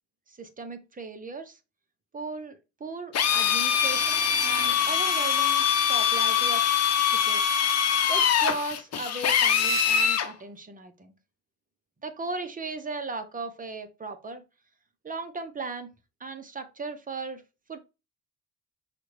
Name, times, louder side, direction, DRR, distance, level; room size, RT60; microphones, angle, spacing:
voice 1, 0.3-1.6 2.1-6.7 7.2-7.4 8.1-11.1 12.0-14.4 15.0-15.9 16.2-17.4 17.7-17.8, right 3 dB, 25° right, 7 dB, 0.9 m, -37 dB
Drill, 3.1-10.3, left 8 dB, 60° left, 0.8 m, -23 dB
5.7 x 2.5 x 3.3 m, 0.27 s
cardioid pair, 90°, 30 cm